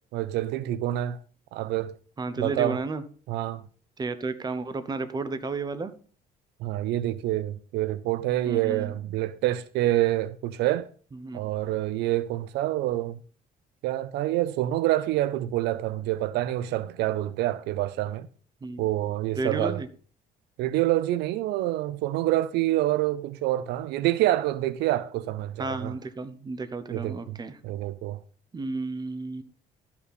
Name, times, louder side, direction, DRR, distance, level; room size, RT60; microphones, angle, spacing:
voice 1, 0.1-1.2 1.5-2.0 2.4-2.8 3.3-3.6 6.6-10.9 11.3-13.2 13.8-18.3 18.8-19.8 20.6-25.9 26.9-27.4 27.6-28.2, right 15 dB, 85° right, 0.6 m, -27 dB
voice 2, 2.2-3.0 4.0-5.9 8.5-8.9 11.2-11.4 18.6-18.8 19.4-19.9 25.6-27.6 28.5-29.4, right 3 dB, 25° right, 0.9 m, -32 dB
12.5 x 5.8 x 4.2 m
cardioid pair, 110°, 17 cm